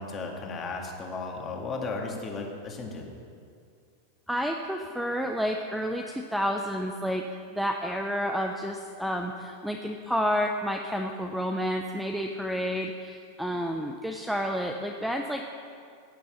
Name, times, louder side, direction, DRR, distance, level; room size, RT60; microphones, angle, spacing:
voice 1, 0.0-3.1, left 3 dB, 20° left, 1 dB, 1.7 m, -35 dB
voice 2, 4.3-7.2 7.5-15.5, equal, ahead, 3 dB, 0.5 m, -30 dB
15.5 x 6.9 x 6.4 m, 2.3 s
supercardioid pair, 155°, 0 cm